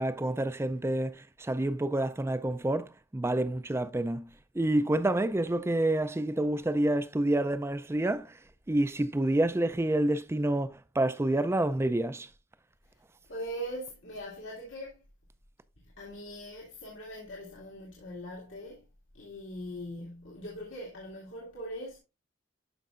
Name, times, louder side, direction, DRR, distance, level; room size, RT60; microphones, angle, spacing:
voice 1, 0.0-4.3 4.5-8.4 8.7-12.3, right 1 dB, 15° right, 0.4 m, -28 dB
voice 2, 13.3-15.0 15.8-18.8 19.1-22.0, equal, 85° left, 2.2 m, -41 dB
12.0 x 5.2 x 2.5 m
head